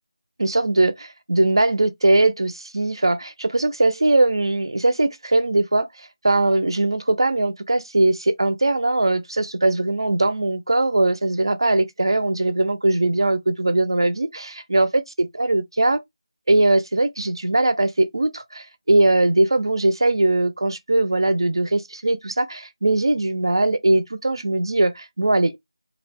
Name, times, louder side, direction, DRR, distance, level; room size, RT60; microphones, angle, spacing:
voice 1, 0.4-15.0 15.5-16.0 16.5-25.6, right 2 dB, 50° right, 0.4 m, -20 dB
2.4 x 2.1 x 3.3 m
figure-of-eight pair, 180°, 3 cm